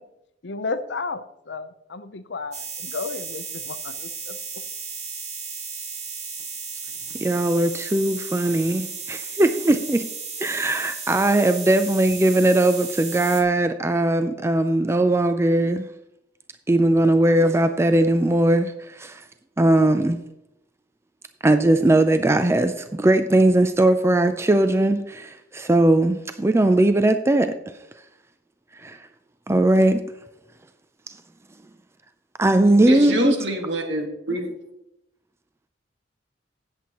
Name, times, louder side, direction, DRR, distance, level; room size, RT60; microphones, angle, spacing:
voice 1, 0.4-4.6, left 4 dB, 65° left, 0.7 m, -33 dB
sound 1, 2.5-13.4, right 5 dB, 40° right, 1.9 m, -34 dB
voice 2, 7.1-10.1 10.4-15.9 16.7-19.2 19.6-20.2 21.4-27.6 28.7-29.1 29.5-30.0 31.1-31.2 32.4-33.3, right 1 dB, 15° right, 0.4 m, -19 dB
voice 3, 32.9-34.5, right 1 dB, 75° right, 1.9 m, -26 dB
16.5 x 7.6 x 3.0 m
head